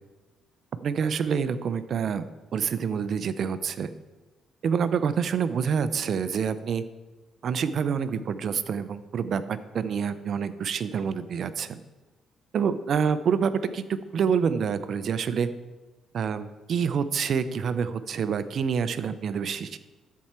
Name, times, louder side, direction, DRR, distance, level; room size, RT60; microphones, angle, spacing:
voice 1, 0.8-3.9 4.6-6.8 7.4-11.8 12.5-13.8 14.1-15.5 16.1-19.8, right 6 dB, 60° right, 13 dB, 0.5 m, -27 dB
13.5 x 4.6 x 4.3 m, 1.2 s
cardioid pair, 90°, 0 cm